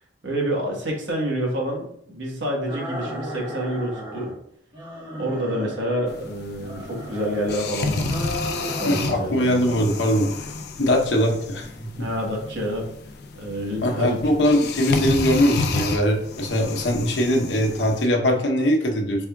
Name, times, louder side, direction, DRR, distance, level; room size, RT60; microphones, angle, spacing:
voice 1, 0.2-4.3 5.2-8.2 8.5-9.6 12.0-12.9 13.3-14.2, equal, 80° right, -1 dB, 1.2 m, -28 dB
sound 1, 2.6-4.4 4.7-6.2 6.6-7.6 8.0-9.2 9.5-10.2, equal, 25° right, 1.3 m, -35 dB
sound 2, 6.1-18.1, left 3 dB, 60° left, 0.4 m, -31 dB
voice 2, 8.9-10.4 10.8-11.9 13.8-19.3, equal, 75° left, 2 dB, 0.8 m, -21 dB
4.5 x 3.4 x 2.3 m, 0.66 s
head